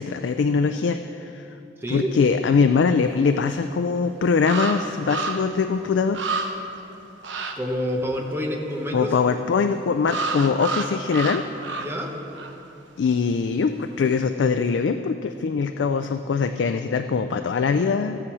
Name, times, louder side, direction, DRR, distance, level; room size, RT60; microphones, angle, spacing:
voice 1, 0.0-1.5 1.9-6.2 8.9-11.4 13.0-18.2, left 5 dB, 75° left, 8 dB, 0.4 m, -22 dB
sound 1, 3.6-3.7 4.4-5.6 5.9-6.0 6.1-6.8 7.2-7.6 10.0-12.1 12.3-12.6, right 3 dB, 90° right, 0.8 m, -29 dB
voice 2, 7.5-9.1 11.8-12.1, equal, 15° right, 0 dB, 1.1 m, -27 dB
13.5 x 8.8 x 4.8 m, 2.9 s
head